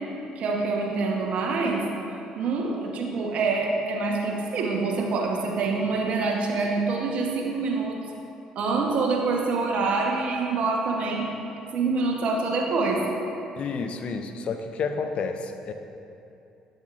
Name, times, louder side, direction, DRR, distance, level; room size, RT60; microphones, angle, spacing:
voice 1, 0.4-1.8 2.3-8.0 8.5-11.3 11.7-13.0, right 3 dB, 60° right, 0 dB, 1.1 m, -26 dB
voice 2, 13.6-15.7, left 5 dB, 50° left, 7 dB, 0.5 m, -30 dB
8.9 x 7.7 x 2.5 m, 2.7 s
hypercardioid pair, 60°, 2 cm